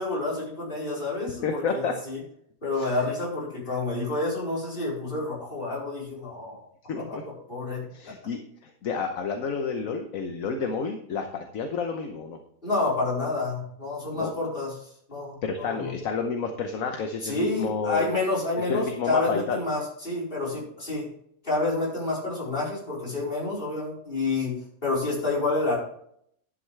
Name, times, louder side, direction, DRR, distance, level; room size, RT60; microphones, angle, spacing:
voice 1, 0.0-2.2 2.6-6.7 7.0-7.1 7.5-7.8 12.6-15.9 17.2-21.1 21.4-25.8, left 2 dB, 35° left, -4 dB, 4.7 m, -29 dB
voice 2, 1.4-1.9 2.8-2.9 6.9-7.2 7.9-12.4 14.1-14.3 15.4-18.0 18.6-19.6, left 5 dB, 70° left, 4 dB, 1.4 m, -30 dB
11.5 x 8.9 x 3.3 m, 0.68 s
omnidirectional pair, 1.5 m